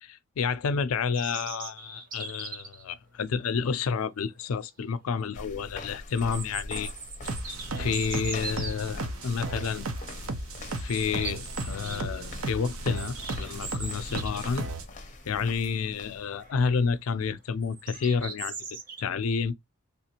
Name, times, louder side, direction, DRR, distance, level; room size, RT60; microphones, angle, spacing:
voice 1, 0.0-6.9 7.8-9.9 10.8-14.7 15.3-18.6 19.0-19.5, left 5 dB, 85° left, 0.4 m, -30 dB
sound 1, 1.1-2.8 4.4-4.5 4.9-5.0 6.1-8.8 9.5-9.7 10.0-10.2 10.6-12.0 12.4-14.6 14.9-15.0 15.4-15.9 16.4-16.8 17.6-19.0, right 4 dB, 40° right, 0.9 m, -40 dB
sound 2, 5.3-16.5, left 2 dB, 35° left, 0.6 m, -44 dB
sound 3, 7.2-14.8, right 2 dB, 80° right, 0.7 m, -35 dB
3.5 x 2.5 x 2.8 m
head